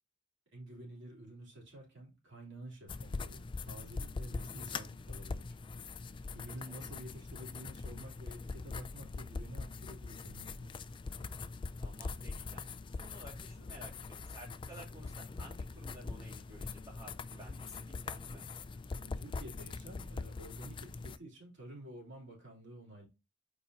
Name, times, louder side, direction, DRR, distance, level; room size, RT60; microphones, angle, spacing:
voice 1, 0.5-5.8 6.3-10.8 19.0-23.1, right 1 dB, 60° right, 3.1 m, -50 dB
sound 1, 2.9-21.2, left 4 dB, 25° left, 0.3 m, -42 dB
voice 2, 4.5-5.0 6.6-6.9 11.8-12.6 12.9-18.5, right 1 dB, 15° right, 3.0 m, -54 dB
8.0 x 4.7 x 2.8 m
head